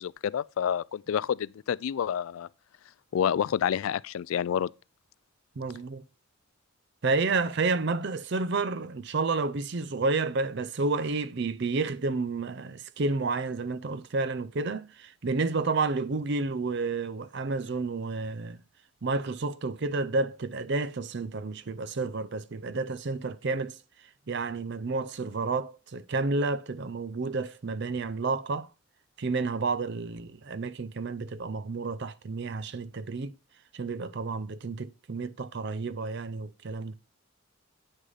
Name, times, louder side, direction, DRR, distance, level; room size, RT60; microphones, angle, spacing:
voice 1, 0.0-2.5 3.1-4.7, left 8 dB, 75° left, 0.3 m, -28 dB
voice 2, 5.6-6.0 7.0-18.6 19.0-23.8 24.3-28.7 29.2-33.3 33.7-36.9, right 3 dB, 55° right, 0.5 m, -30 dB
9.2 x 6.4 x 4.0 m
head